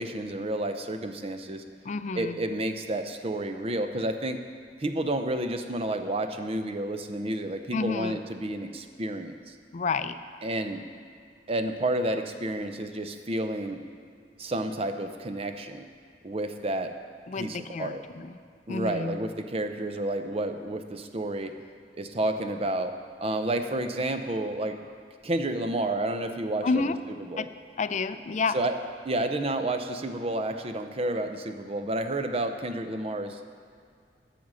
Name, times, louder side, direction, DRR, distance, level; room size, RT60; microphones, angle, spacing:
voice 1, 0.0-1.6 2.1-4.4 4.8-9.5 10.4-10.8 11.5-13.8 14.4-15.9 16.2-16.9 17.3-18.0 18.7-21.5 21.9-22.9 23.2-24.8 25.2-26.9 27.3-27.4 28.5-28.8 29.0-33.5, right 1 dB, 35° right, 7 dB, 0.7 m, -30 dB
voice 2, 1.8-2.4 7.7-8.2 9.7-10.2 17.3-18.4 18.7-19.2 26.6-27.0 27.4-27.5 27.8-28.6, left 4 dB, 45° left, 11 dB, 0.4 m, -29 dB
12.0 x 6.9 x 6.2 m, 2.2 s
head